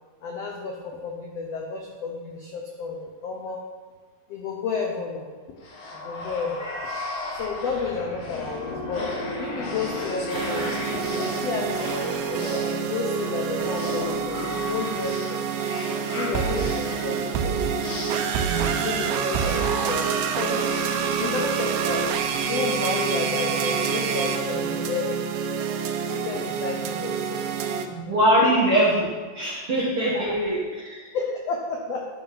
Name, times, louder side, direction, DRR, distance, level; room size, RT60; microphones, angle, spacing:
voice 1, 0.2-3.7 4.3-5.6 5.9-6.7 7.3-9.1 9.4-15.4 15.8-17.8 18.5-20.0 20.4-22.1 22.5-25.2 26.0-27.4 28.1-28.4 30.1-30.4 31.1-32.1, left 4 dB, 90° left, 0 dB, 1.4 m, -32 dB
sound 1, 5.6-23.3, left 1 dB, 50° left, 2.2 m, -35 dB
sound 2, 10.3-27.9, right 7 dB, 85° right, 2.5 m, -27 dB
voice 2, 18.5-18.9 19.3-19.5 21.2-21.3 27.9-29.1 29.3-31.1, right 1 dB, 60° right, -5 dB, 1.4 m, -23 dB
11.0 x 5.8 x 4.2 m, 1.5 s
omnidirectional pair, 4.1 m